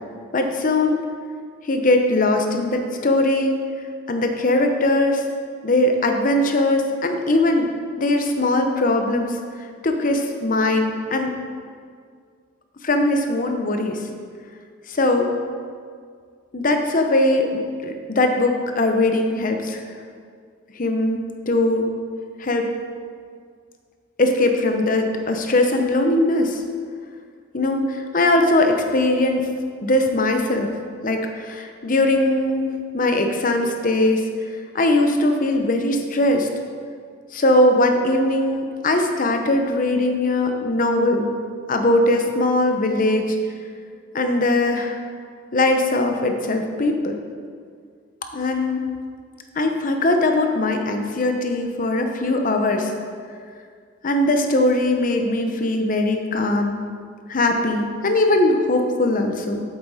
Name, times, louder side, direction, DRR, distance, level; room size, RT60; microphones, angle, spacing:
voice 1, 0.3-1.0 1.6-3.6 4.1-5.2 5.6-7.7 8.0-9.4 9.8-11.3 12.8-14.0 14.9-15.3 16.5-19.8 20.7-21.9 22.4-22.7 24.2-26.6 27.5-29.5 29.8-30.7 31.0-34.2 34.7-36.5 37.3-41.3 41.7-43.4 44.1-45.0 45.5-47.1 48.3-48.9 49.5-52.9 54.0-56.8 57.3-59.6, left 2 dB, 45° left, 4 dB, 0.8 m, -20 dB
8.0 x 7.5 x 4.2 m, 2.1 s
head